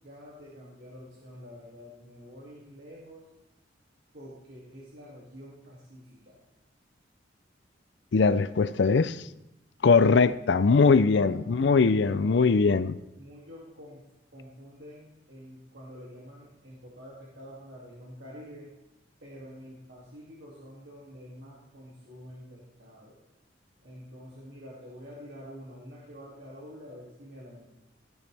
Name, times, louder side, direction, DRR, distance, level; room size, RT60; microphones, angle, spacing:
voice 1, 0.0-3.2 4.1-6.3 11.2-12.7 13.2-14.0 14.3-18.7 19.2-23.2 23.8-27.7, equal, 65° right, -6 dB, 2.5 m, -47 dB
voice 2, 8.1-9.2 9.8-13.0, left 4 dB, 65° left, 15 dB, 0.5 m, -21 dB
16.5 x 8.8 x 3.4 m, 0.91 s
head